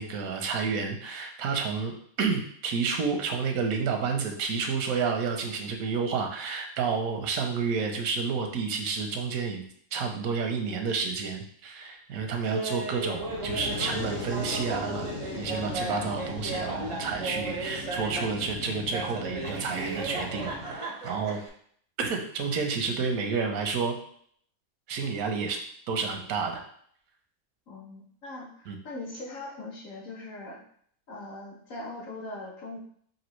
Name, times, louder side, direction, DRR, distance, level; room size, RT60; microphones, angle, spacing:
voice 1, 0.0-1.9 2.2-9.6 9.9-15.1 15.4-21.4 22.0-24.0 24.9-25.6 25.9-26.6 28.7-28.8, right 5 dB, 85° right, 4 dB, 1.1 m, -30 dB
Laughter, 12.5-18.5 18.9-21.5, right 2 dB, 45° right, 0.4 m, -35 dB
Fire, 13.1-20.7, left 2 dB, 50° left, 0.9 m, -39 dB
voice 2, 27.7-30.6 31.1-32.8, left 2 dB, 70° left, -3 dB, 1.5 m, -40 dB
5.2 x 2.7 x 3.1 m, 0.62 s
omnidirectional pair, 1.5 m